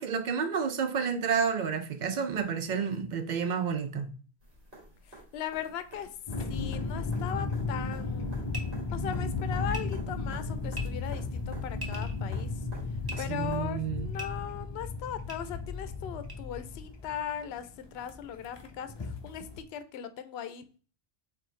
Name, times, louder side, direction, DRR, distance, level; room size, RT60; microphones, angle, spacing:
voice 1, 0.0-4.1 13.3-14.1, right 6 dB, 55° right, 0.5 m, -30 dB
sound 1, 4.4-13.6 15.5-15.6, right 1 dB, 85° right, 2.3 m, -51 dB
voice 2, 5.1-6.1 6.5-8.3 8.9-12.6 13.2-20.8, left 9 dB, 75° left, 0.8 m, -38 dB
sound 2, 6.3-19.6, left 3 dB, 35° left, 0.5 m, -35 dB
sound 3, 8.5-8.6 9.7-9.8 10.7-10.8 11.7-12.2 13.0-13.2 14.1-14.3 15.3-15.4 16.3-16.4, right 1 dB, 25° right, 0.8 m, -39 dB
4.6 x 3.8 x 3.1 m
omnidirectional pair, 1.1 m